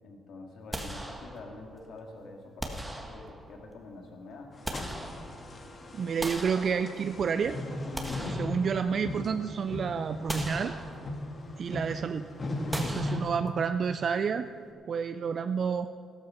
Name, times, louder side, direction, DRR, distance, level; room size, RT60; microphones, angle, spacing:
voice 1, 0.0-4.5, left 2 dB, 70° left, 2 dB, 2.3 m, -46 dB
sound 1, 0.7-1.8 2.6-3.6 4.3-5.6 6.2-7.3 7.7-9.2 9.6-9.7 10.3-11.3 12.7-13.8, right 1 dB, 10° right, 1.6 m, -39 dB
sound 2, 4.5-13.2, left 1 dB, 40° left, 1.7 m, -37 dB
voice 2, 5.9-7.6 8.2-10.7 11.6-12.2 12.8-14.5 14.9-15.9, right 6 dB, 50° right, 10 dB, 0.4 m, -30 dB
13.5 x 13.0 x 5.7 m, 2.4 s
cardioid pair, 90°, 0 cm